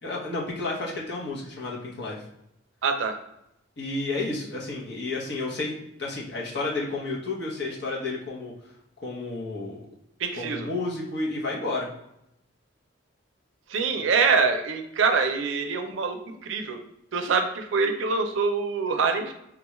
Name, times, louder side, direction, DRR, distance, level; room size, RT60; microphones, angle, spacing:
voice 1, 0.0-2.2 3.8-5.7 6.0-8.5 9.0-9.8 10.4-11.9, left 2 dB, 60° left, -3 dB, 0.8 m, -31 dB
voice 2, 2.8-3.1 10.2-10.7 13.7-16.8 17.1-19.3, right 4 dB, 75° right, 7 dB, 0.4 m, -25 dB
3.6 x 2.3 x 2.9 m, 0.80 s
head